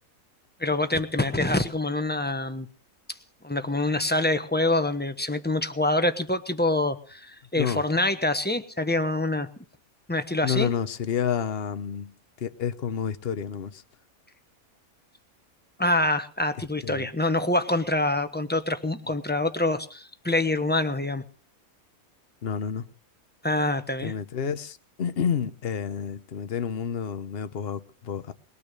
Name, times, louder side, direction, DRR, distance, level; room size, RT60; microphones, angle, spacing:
voice 1, 0.6-2.7 3.4-9.5 10.1-10.7 15.8-21.2 23.4-24.1, left 2 dB, 10° left, 1.0 m, -25 dB
voice 2, 10.4-12.1 12.4-13.8 16.8-17.1 22.4-22.8 24.0-28.3, left 7 dB, 45° left, 1.1 m, -29 dB
21.0 x 9.6 x 6.8 m
omnidirectional pair, 1.5 m